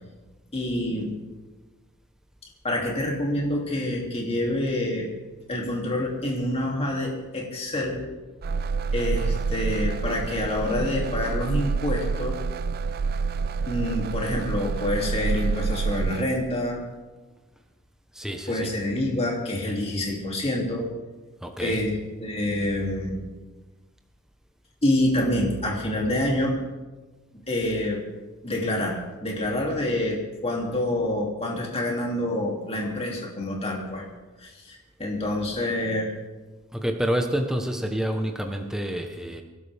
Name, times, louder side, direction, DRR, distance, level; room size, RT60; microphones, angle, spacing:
voice 1, 0.5-1.2 2.6-5.1 5.5-8.0 8.9-12.4 13.7-16.8 18.5-20.9 21.6-23.3 24.8-26.6 27.5-28.0 28.4-34.0 34.4-36.1, left 1 dB, 25° left, -2 dB, 2.8 m, -27 dB
sound 1, 8.4-16.3, right 4 dB, 45° right, 0.4 m, -28 dB
voice 2, 18.1-18.7 21.4-21.8 36.7-39.4, equal, ahead, 3 dB, 1.1 m, -28 dB
25.0 x 11.5 x 3.5 m, 1.2 s
head